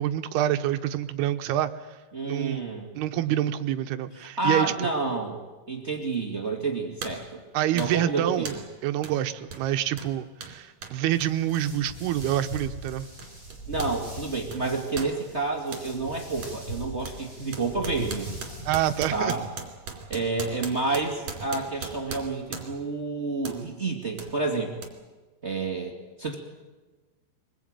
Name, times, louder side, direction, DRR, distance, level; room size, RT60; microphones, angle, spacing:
voice 1, 0.0-1.7 2.3-2.6 3.0-4.9 7.5-8.5 8.8-13.1 18.7-19.3, right 12 dB, 75° right, 9 dB, 2.8 m, -27 dB
voice 2, 2.1-3.0 4.2-5.4 5.7-7.4 7.7-8.6 13.7-18.3 19.1-19.5 20.1-24.8 25.4-26.4, right 3 dB, 25° right, 2 dB, 1.4 m, -29 dB
sound 1, 6.1-6.3 7.0-7.3 7.8-8.1 8.5-8.7 9.0-9.2 9.5-14.0 14.3-15.9 16.4-16.6 17.0-22.9 23.4-23.6 24.2-24.3 24.8-24.9, right 5 dB, 45° right, 3.7 m, -39 dB
sound 2, 11.1-19.5, right 1 dB, 20° left, 8.2 m, -41 dB
24.0 x 21.0 x 9.0 m, 1.2 s
omnidirectional pair, 5.1 m